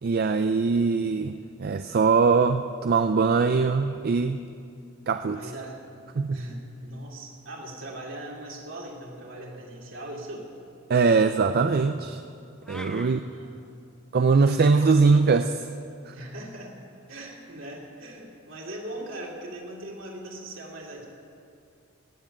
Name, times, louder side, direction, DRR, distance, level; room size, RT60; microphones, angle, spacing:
voice 1, 0.0-4.4 5.1-5.5 6.2-6.4 10.9-12.2 12.7-13.2 14.1-15.7 16.1-16.2, right 4 dB, 50° right, 8 dB, 0.4 m, -22 dB
voice 2, 5.3-5.8 6.3-10.5 13.0-13.9 16.1-16.8 17.1-21.1, right 1 dB, 70° right, -2 dB, 3.0 m, -40 dB
sound 1, 12.6-13.1, equal, 5° left, 0.8 m, -41 dB
16.0 x 7.5 x 9.5 m, 2.4 s
head